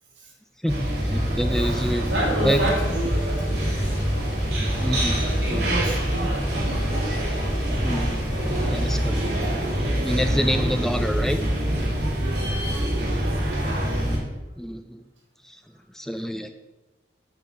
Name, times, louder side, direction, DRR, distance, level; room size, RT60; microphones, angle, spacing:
voice 1, 0.6-2.1 2.4-2.6 4.8-5.2 5.5-5.6 7.8-8.2 8.7-9.2 10.0-11.4 14.6-15.0 15.4-15.6 15.9-16.5, equal, ahead, 7 dB, 0.3 m, -27 dB
sound 1, 0.7-14.2, equal, 60° right, 2.7 m, -25 dB
voice 2, 1.5-3.9 5.1-6.4 12.2-13.4, right 1 dB, 85° right, -2 dB, 3.0 m, -31 dB
sound 2, 2.1-8.9, equal, 55° left, 2.9 m, -38 dB
8.5 x 4.5 x 7.2 m, 1.1 s
head